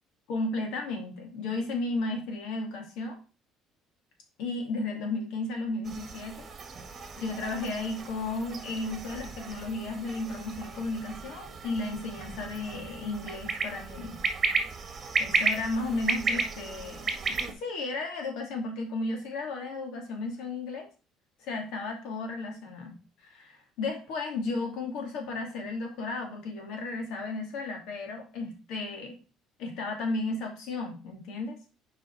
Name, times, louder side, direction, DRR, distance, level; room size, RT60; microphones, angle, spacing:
voice 1, 0.3-3.2 4.4-6.5 7.2-14.2 15.2-20.9 21.4-22.9 23.2-29.1 29.6-31.6, left 3 dB, 75° left, 2 dB, 2.5 m, -34 dB
sound 1, 5.8-17.5, right 4 dB, 35° right, 1.3 m, -34 dB
7.4 x 4.8 x 4.6 m, 0.34 s
cardioid pair, 125°, 0 cm